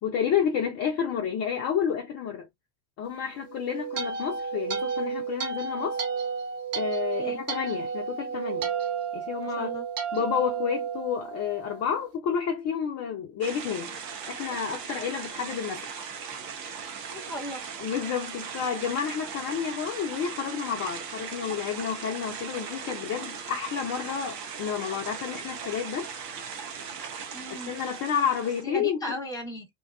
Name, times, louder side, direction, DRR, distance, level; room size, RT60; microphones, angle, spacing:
voice 1, 0.0-2.5 3.0-6.0 6.7-8.7 9.1-9.7 10.1-14.0 14.3-15.9 17.8-26.1 27.5-29.2, left 8 dB, 30° left, 0.6 m, -30 dB
sound 1, 3.4-11.8, right 6 dB, 30° right, 0.7 m, -32 dB
voice 2, 9.4-9.8 10.1-10.2 17.1-17.6 27.3-27.7 28.6-29.7, equal, 5° left, 1.0 m, -36 dB
sound 2, 13.4-28.6, right 6 dB, 75° right, 0.8 m, -38 dB
2.8 x 2.3 x 2.3 m
figure-of-eight pair, 70°, 49 cm